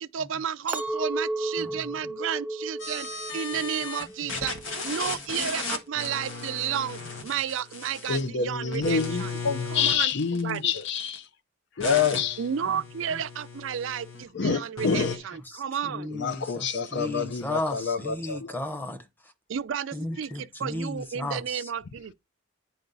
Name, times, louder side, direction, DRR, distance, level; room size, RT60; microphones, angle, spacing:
voice 1, 0.0-4.6 4.8-9.3 9.7-10.1 10.4-10.7 12.4-16.1 19.5-22.1, right 8 dB, 75° right, 0.4 m, -32 dB
Chink clink, 0.7-5.0 5.5-5.9, right 2 dB, 10° right, 0.3 m, -34 dB
sound 1, 2.8-4.0 4.3-8.3 8.7-11.2 11.8-14.2 14.8-15.2, left 4 dB, 80° left, 1.5 m, -36 dB
voice 2, 8.1-11.3 11.8-12.4 14.3-15.2 16.1-18.6, left 6 dB, 60° left, 0.5 m, -27 dB
voice 3, 15.5-19.3 19.9-21.7, left 1 dB, 10° left, 0.9 m, -35 dB
9.4 x 4.6 x 4.0 m
head